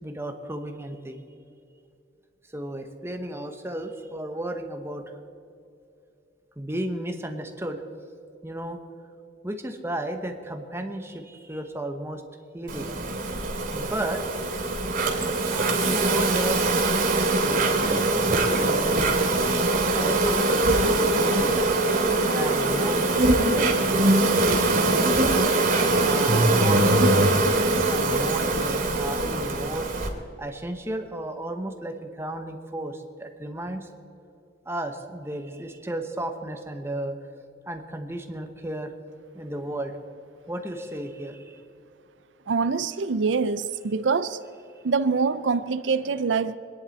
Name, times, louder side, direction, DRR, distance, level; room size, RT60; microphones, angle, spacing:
voice 1, 0.0-1.2 2.5-5.0 6.6-7.8 8.4-8.8 9.4-12.2 12.5-12.9 13.7-14.2 15.5-16.6 17.4-19.1 19.9-21.7 22.3-25.5 26.0-27.5 27.8-29.9 30.4-33.9 34.6-37.2 37.7-38.9 39.3-40.0 40.5-41.6, right 1 dB, 15° right, 1.0 m, -34 dB
Insect, 12.7-30.1, right 2 dB, 45° right, 2.8 m, -22 dB
voice 2, 42.5-44.4 44.8-46.6, right 4 dB, 85° right, 0.6 m, -24 dB
25.5 x 10.5 x 4.2 m
head